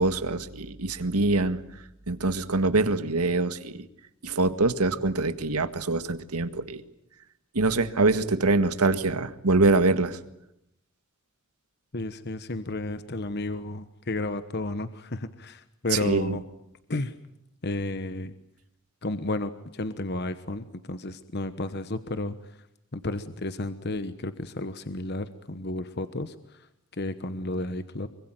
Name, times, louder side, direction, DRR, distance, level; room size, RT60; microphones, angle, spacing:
voice 1, 0.0-1.6 2.1-3.8 4.2-6.8 7.5-10.2 15.9-16.4, right 3 dB, 85° right, 10 dB, 1.8 m, -24 dB
voice 2, 11.9-16.4 16.9-17.1 17.6-18.3 19.0-22.6 22.9-28.1, left 2 dB, 50° left, 11 dB, 1.1 m, -32 dB
25.5 x 24.0 x 9.2 m, 0.79 s
head